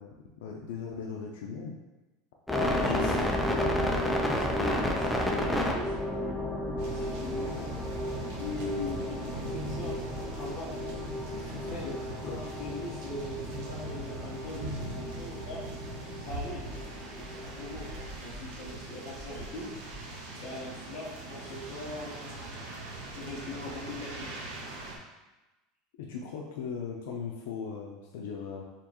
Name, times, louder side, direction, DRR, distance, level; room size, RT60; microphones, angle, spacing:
voice 1, 0.0-1.8 2.8-3.1 11.2-12.4 26.0-28.6, left 6 dB, 80° left, 0 dB, 0.5 m, -39 dB
voice 2, 2.5-3.0 3.5-7.7 8.4-10.8 11.6-11.9 12.3-15.7 16.2-19.7 20.4-22.6 23.1-24.3, left 2 dB, 35° left, -6 dB, 1.1 m, -41 dB
sound 1, 2.5-18.1, left 1 dB, ahead, 0.3 m, -32 dB
sound 2, 6.8-25.0, right 2 dB, 70° right, 0.7 m, -41 dB
4.3 x 3.0 x 3.0 m, 1.1 s
supercardioid pair, 180°, 0 cm